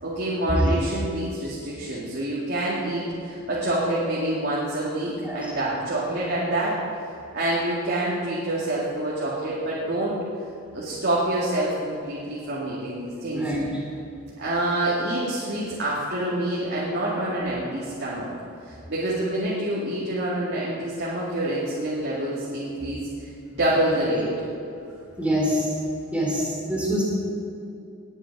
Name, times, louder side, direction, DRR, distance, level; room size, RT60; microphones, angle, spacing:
voice 1, 0.0-6.8 7.3-10.2 10.7-13.5 14.4-18.3 18.7-23.1 23.5-24.3, right 1 dB, 50° right, -7 dB, 2.3 m, -27 dB
voice 2, 25.2-25.7 26.1-27.0, equal, 5° right, -4 dB, 3.7 m, -24 dB
20.0 x 9.0 x 4.8 m, 2.6 s
head